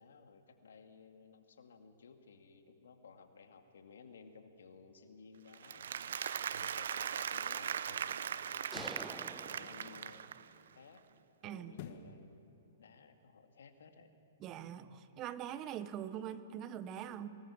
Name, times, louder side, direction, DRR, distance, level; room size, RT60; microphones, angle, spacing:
voice 1, 0.0-5.9 6.5-8.7 9.5-11.0 11.4-12.5 12.8-14.1, left 5 dB, 75° left, 6 dB, 2.2 m, -57 dB
Applause, 5.5-10.6, right 8 dB, 70° right, 0.7 m, -39 dB
sound 1, 8.7-9.1 11.7-12.2 12.7-12.8, left 8 dB, 50° left, 1.6 m, -48 dB
sound 2, 8.7-10.5, right 2 dB, 5° right, 1.0 m, -49 dB
voice 2, 14.4-17.3, right 10 dB, 30° right, 13 dB, 1.1 m, -43 dB
24.0 x 19.5 x 7.2 m, 3.0 s
hypercardioid pair, 125°, 0 cm